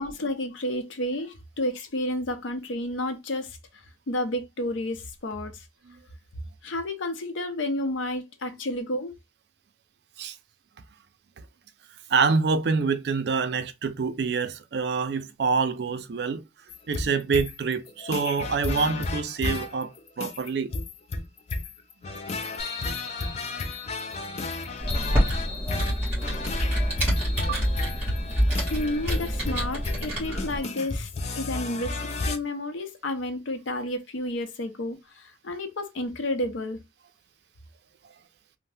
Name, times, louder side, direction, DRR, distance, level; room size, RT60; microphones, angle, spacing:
voice 1, 0.0-5.7 6.6-9.1 28.7-36.8, left 1 dB, 90° left, 0.6 m, -31 dB
voice 2, 12.1-16.4 16.9-19.9 20.2-20.7 25.1-25.2 27.5-27.6, right 5 dB, 60° right, 0.4 m, -26 dB
sound 1, 16.7-32.4, left 3 dB, 35° left, 0.3 m, -33 dB
sound 2, 22.6-29.2, left 4 dB, 55° left, 1.1 m, -42 dB
Computer keyboard, 24.8-30.6, equal, 10° right, 1.4 m, -27 dB
2.7 x 2.0 x 3.2 m
head